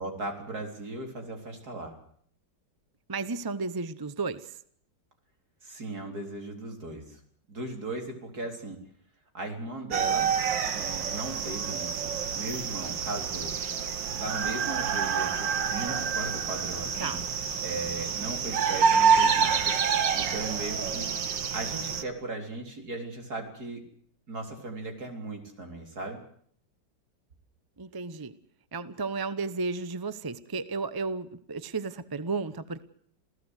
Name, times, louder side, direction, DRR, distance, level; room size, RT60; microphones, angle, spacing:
voice 1, 0.0-1.9 5.6-7.2 7.5-8.8 9.3-10.3 10.8-12.1 12.3-13.6 14.1-17.2 17.6-19.7 20.1-21.1 21.5-23.8 24.3-26.2, right 2 dB, 55° right, 4 dB, 4.3 m, -37 dB
voice 2, 3.1-4.4 17.0-17.2 27.8-28.3 28.7-32.8, right 4 dB, 25° right, 14 dB, 0.5 m, -33 dB
sound 1, 9.9-22.0, right 6 dB, 85° right, 2.0 m, -27 dB
27.5 x 16.0 x 8.1 m, 0.63 s
omnidirectional pair, 1.9 m